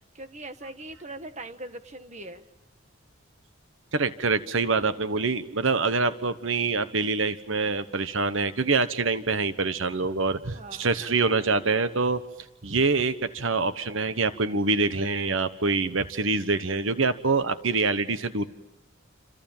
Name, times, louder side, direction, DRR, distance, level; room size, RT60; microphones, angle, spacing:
voice 1, 0.0-2.5 10.5-10.9, right 2 dB, 35° right, 9 dB, 1.6 m, -41 dB
voice 2, 3.9-12.2 12.6-18.5, right 4 dB, 75° right, 12 dB, 1.2 m, -25 dB
30.0 x 27.0 x 7.4 m, 0.91 s
head